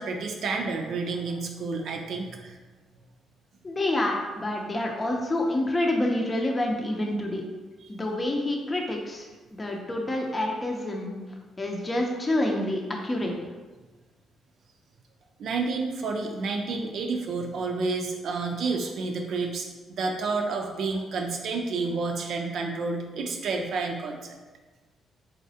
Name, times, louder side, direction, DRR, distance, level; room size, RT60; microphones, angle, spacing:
voice 1, 0.0-2.6 15.4-24.4, right 4 dB, 70° right, 2 dB, 0.4 m, -30 dB
voice 2, 3.6-7.4 7.9-11.1 11.6-13.4, left 1 dB, 25° left, 0 dB, 0.6 m, -28 dB
4.1 x 3.5 x 2.8 m, 1.2 s
cardioid pair, 90°, 0 cm